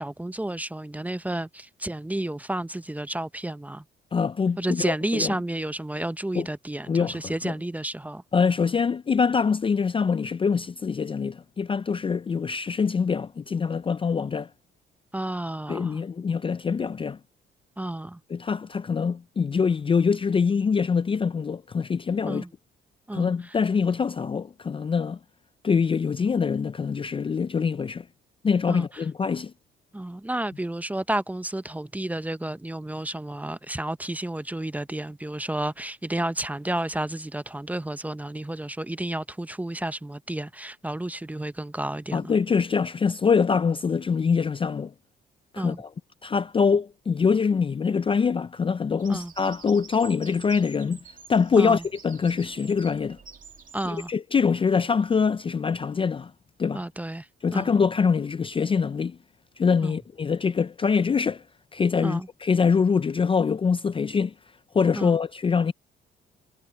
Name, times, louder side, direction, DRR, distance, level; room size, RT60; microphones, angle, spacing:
voice 1, 0.0-3.8 4.6-8.2 15.1-16.0 17.8-18.2 22.3-22.5 23.1-23.3 28.7-28.9 29.9-42.3 45.6-45.8 49.1-49.3 51.6-51.8 53.7-54.1 56.7-57.3 57.5-57.7 59.8-60.0 62.0-62.3 64.9-65.2, right 1 dB, 10° right, 0.7 m, -31 dB
voice 2, 4.1-5.3 6.3-6.5 6.9-7.5 8.3-14.5 15.7-17.2 18.3-22.4 23.1-25.2 25.6-28.1 28.4-29.5 42.1-44.9 45.5-45.9 46.2-51.0 51.3-53.2 53.9-56.3 56.6-56.8 57.4-59.2 59.6-61.4 61.7-64.3 64.7-65.7, left 5 dB, 25° left, 0.4 m, -24 dB
Bird vocalization bird call bird song, 49.0-54.1, right 6 dB, 40° right, 2.7 m, -48 dB
cardioid pair, 90°, 20 cm